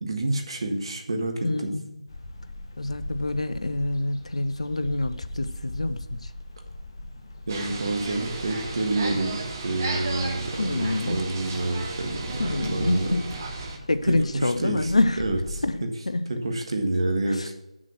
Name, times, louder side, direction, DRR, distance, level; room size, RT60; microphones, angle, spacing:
voice 1, 0.0-1.7 7.5-13.2 14.1-14.9 15.2-15.9 16.3-17.6, right 2 dB, 50° right, 3 dB, 1.6 m, -28 dB
voice 2, 1.4-2.0 2.8-6.3 10.6-11.2 12.4-13.3 13.9-15.2 15.6-15.8 16.1-16.3 17.4-17.5, left 2 dB, 65° left, 12 dB, 0.7 m, -26 dB
sound 1, 2.1-15.7, left 1 dB, 40° left, 1.1 m, -40 dB
sound 2, 7.5-13.8, right 3 dB, 30° right, 1.0 m, -34 dB
7.5 x 6.3 x 5.9 m, 0.91 s
figure-of-eight pair, 160°, 4 cm